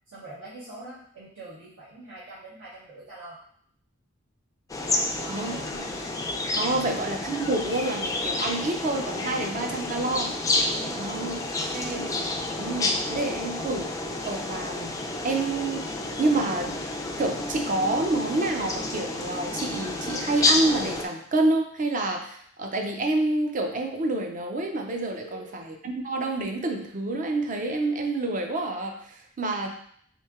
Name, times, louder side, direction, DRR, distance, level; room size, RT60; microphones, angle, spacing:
voice 1, 0.1-3.4 4.8-5.7 6.7-6.9 10.7-11.2 25.2-25.5, right 2 dB, 80° right, -11 dB, 1.2 m, -43 dB
sound 1, 4.7-21.0, left 2 dB, 20° left, 0.3 m, -30 dB
voice 2, 6.6-10.3 11.0-11.4 11.7-12.1 12.6-13.9 14.2-14.9 15.2-16.8 17.2-25.4 26.0-29.7, right 2 dB, 40° right, 3 dB, 0.5 m, -28 dB
3.3 x 2.7 x 3.5 m, 0.63 s
head